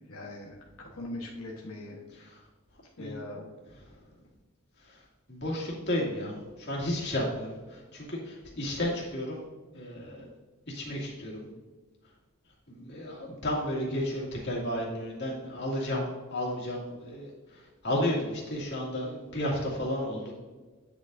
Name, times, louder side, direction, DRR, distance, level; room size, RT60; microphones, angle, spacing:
voice 1, 0.1-2.0 2.8-3.6, left 2 dB, 90° left, -3 dB, 1.1 m, -41 dB
voice 2, 2.1-2.5 3.0-3.1 3.8-4.0 4.8-9.4 9.7-10.3 10.7-11.5 12.7-20.3, left 1 dB, 55° left, -4 dB, 2.3 m, -33 dB
9.2 x 7.3 x 2.6 m, 1.3 s
head